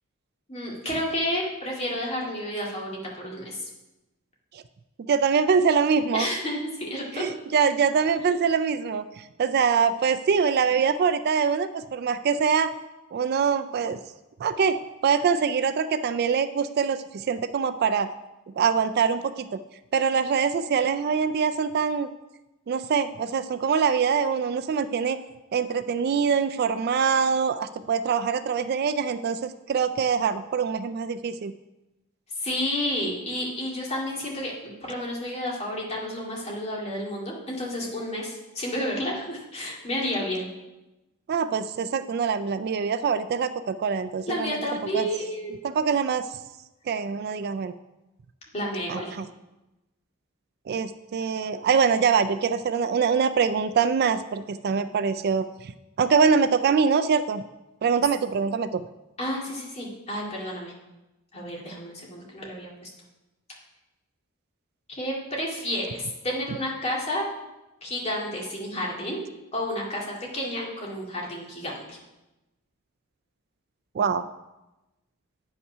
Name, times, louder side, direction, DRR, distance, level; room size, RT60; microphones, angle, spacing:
voice 1, 0.5-3.7 6.1-7.2 32.4-40.5 44.3-45.6 48.5-49.1 59.2-60.7 61.3-62.9 65.0-67.3 67.8-69.2 69.5-72.0, left 1 dB, 30° left, -3 dB, 2.2 m, -31 dB
voice 2, 5.1-6.3 7.1-12.7 13.1-14.0 14.4-18.1 18.6-19.6 19.9-22.1 22.7-25.2 25.5-31.5 41.3-44.6 44.9-45.1 45.6-46.3 46.9-47.7 48.9-49.2 50.7-55.7 56.0-57.4 57.8-58.8 74.0-74.2, right 6 dB, 50° right, 11 dB, 0.3 m, -24 dB
9.1 x 5.6 x 5.5 m, 1.0 s
head